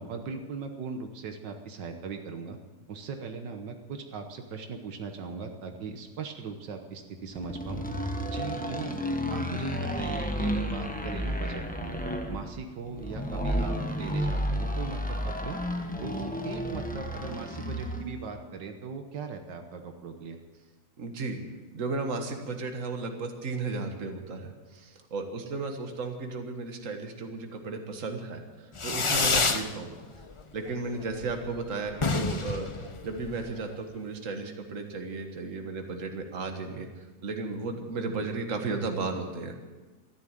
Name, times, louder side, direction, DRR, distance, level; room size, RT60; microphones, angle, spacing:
voice 1, 0.0-2.6 2.9-7.8 8.3-9.0 9.3-11.9 12.3-15.6 16.0-20.4, right 5 dB, 80° right, 5 dB, 1.8 m, -39 dB
sound 1, 7.4-18.1, equal, 5° left, 1.1 m, -32 dB
voice 2, 21.0-21.4 21.7-29.9 30.5-36.9 37.2-39.5, right 3 dB, 45° right, 4 dB, 1.9 m, -34 dB
Fireworks, 28.8-29.7 30.0-30.6 30.9-31.0 31.2-31.3 31.6-31.7 31.9-33.6, left 4 dB, 55° left, 0.3 m, -28 dB
13.5 x 11.5 x 9.0 m, 1.2 s
omnidirectional pair, 1.9 m